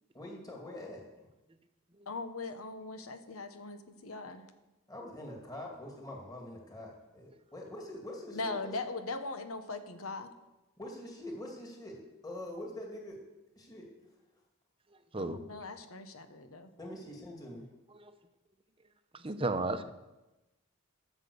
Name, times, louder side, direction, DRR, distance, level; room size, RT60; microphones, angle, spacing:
voice 1, 0.1-1.1 4.9-8.7 10.8-13.2 13.6-13.9 16.8-17.6, left 1 dB, 20° left, 0 dB, 2.4 m, -44 dB
voice 2, 2.1-4.5 8.3-10.3 15.2-16.7, left 3 dB, 90° left, 9 dB, 1.2 m, -40 dB
voice 3, 19.1-19.9, right 2 dB, 25° right, 9 dB, 0.8 m, -34 dB
13.5 x 7.5 x 6.9 m, 1.0 s
head